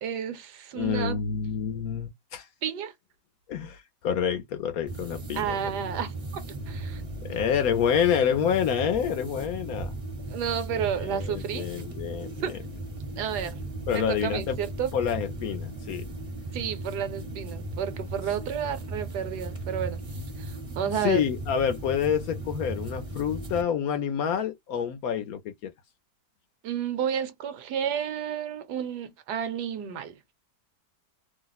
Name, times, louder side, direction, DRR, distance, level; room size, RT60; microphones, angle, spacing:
voice 1, 0.0-1.2 2.6-2.9 5.3-7.0 10.3-11.7 12.4-12.6 13.2-14.9 16.5-20.0 20.4-21.2 26.6-30.1, right 8 dB, 75° right, 1.2 m, -31 dB
voice 2, 0.7-2.5 3.5-5.6 7.2-9.9 11.1-12.3 13.9-14.6 14.9-16.1 21.0-25.7, left 8 dB, 70° left, 0.9 m, -28 dB
sound 1, 4.9-23.6, right 2 dB, 30° right, 0.7 m, -37 dB
3.0 x 2.0 x 3.9 m
omnidirectional pair, 1.8 m